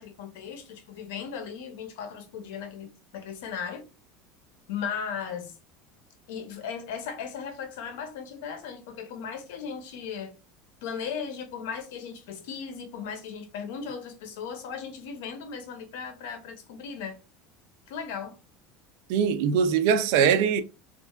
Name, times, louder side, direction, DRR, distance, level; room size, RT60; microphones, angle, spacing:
voice 1, 0.0-3.8 4.7-5.5 6.3-10.3 10.8-17.2 17.9-18.4, left 6 dB, 80° left, 0.7 m, -37 dB
voice 2, 19.1-20.6, right 7 dB, 70° right, 0.4 m, -22 dB
2.9 x 2.4 x 2.2 m
supercardioid pair, 145°, 0 cm